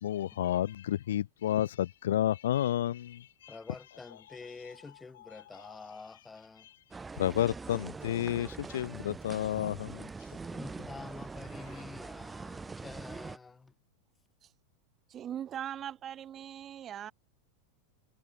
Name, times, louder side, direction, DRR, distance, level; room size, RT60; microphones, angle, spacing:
voice 1, 0.0-3.5 7.2-10.1, left 12 dB, 85° left, 0.5 m, -31 dB
voice 2, 3.5-6.7 10.5-13.7, left 4 dB, 15° left, 1.8 m, -48 dB
sound 1, 6.9-13.4, right 4 dB, 10° right, 0.4 m, -43 dB
voice 3, 15.1-17.1, right 10 dB, 30° right, 2.1 m, -40 dB
supercardioid pair, 130°, 0 cm